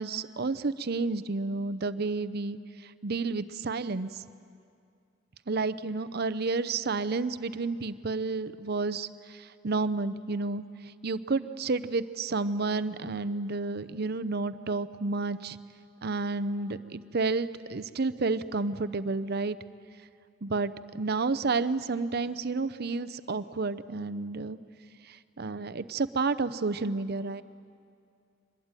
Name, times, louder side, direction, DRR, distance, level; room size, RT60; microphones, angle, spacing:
voice 1, 0.0-2.6 3.0-4.1 5.5-10.6 11.0-15.6 16.0-19.6 20.4-24.6 25.1-27.4, right 3 dB, 55° right, 13 dB, 0.7 m, -30 dB
24.0 x 21.0 x 9.0 m, 2.4 s
head